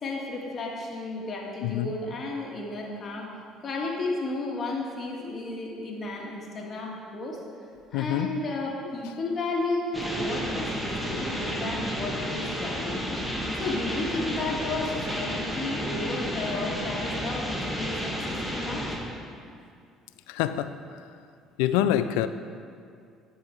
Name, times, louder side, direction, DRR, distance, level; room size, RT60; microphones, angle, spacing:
voice 1, 0.0-3.4 3.6-7.4 7.9-13.2 13.6-18.9, left 2 dB, 45° left, -1 dB, 1.7 m, -33 dB
voice 2, 1.6-1.9 7.9-8.3 20.3-20.7 21.6-22.3, left 12 dB, 90° left, 12 dB, 0.3 m, -25 dB
sound 1, 9.9-19.0, equal, ahead, 1.7 m, -31 dB
11.0 x 4.8 x 4.5 m, 2.3 s
supercardioid pair, 80°, 0 cm